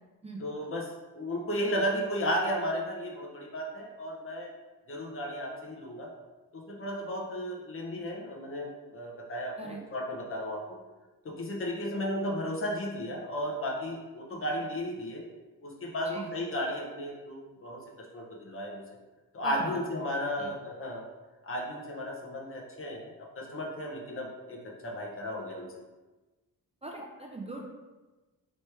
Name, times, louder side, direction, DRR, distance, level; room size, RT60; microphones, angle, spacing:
voice 1, 0.4-4.5 4.9-6.1 6.5-10.8 11.2-15.2 15.6-18.8 19.3-21.1 21.4-25.7, equal, 40° left, -1 dB, 0.8 m, -34 dB
voice 2, 19.4-19.8 20.4-20.5 26.8-27.7, right 2 dB, 20° right, 0 dB, 0.4 m, -40 dB
3.2 x 3.2 x 4.3 m, 1.2 s
wide cardioid pair, 155°, 35 cm